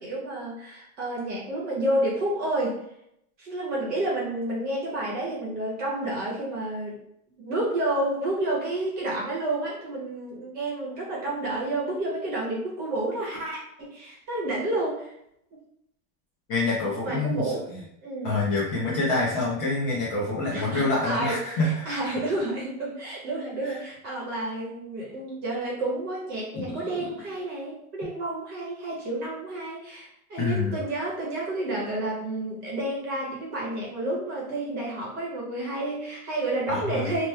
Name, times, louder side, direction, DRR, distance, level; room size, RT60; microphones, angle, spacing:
voice 1, 0.0-2.8 3.4-7.0 7.4-15.1 17.0-17.7 18.0-18.4 20.5-37.3, right 1 dB, 20° right, -4 dB, 0.9 m, -30 dB
voice 2, 16.5-17.4 18.2-22.0 23.6-23.8 26.5-26.8 30.4-30.8 36.7-37.1, left 2 dB, 25° left, -6 dB, 0.5 m, -26 dB
2.9 x 2.1 x 3.2 m, 0.75 s
supercardioid pair, 155°, 43 cm